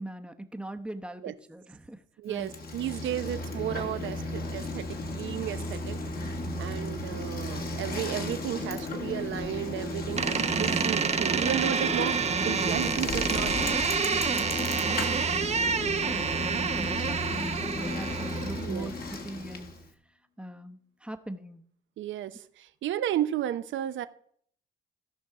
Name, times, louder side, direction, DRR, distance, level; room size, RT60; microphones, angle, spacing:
voice 1, 0.0-2.5 13.7-19.7 20.4-21.6, right 1 dB, 5° right, 7 dB, 0.9 m, -41 dB
voice 2, 2.2-6.0 6.6-12.2 12.4-13.5 18.6-18.9 22.0-24.1, right 11 dB, 75° right, 13 dB, 0.8 m, -33 dB
Bicycle, 2.3-19.9, left 2 dB, 50° left, 1.7 m, -34 dB
Door, 10.2-18.7, right 6 dB, 35° right, 0.7 m, -28 dB
sound 1, 11.6-19.5, left 9 dB, 90° left, 2.1 m, -54 dB
16.0 x 5.5 x 4.8 m, 0.63 s
cardioid pair, 90°, 20 cm